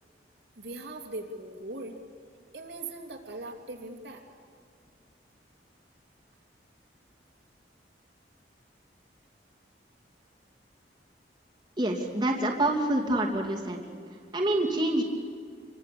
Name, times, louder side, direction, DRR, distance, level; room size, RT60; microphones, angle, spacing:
voice 1, 0.6-2.0 2.5-4.3, right 2 dB, 75° right, 2 dB, 3.1 m, -40 dB
voice 2, 11.8-13.8 14.3-15.0, right 1 dB, 25° right, -1 dB, 2.8 m, -26 dB
27.5 x 24.0 x 8.6 m, 2.1 s
head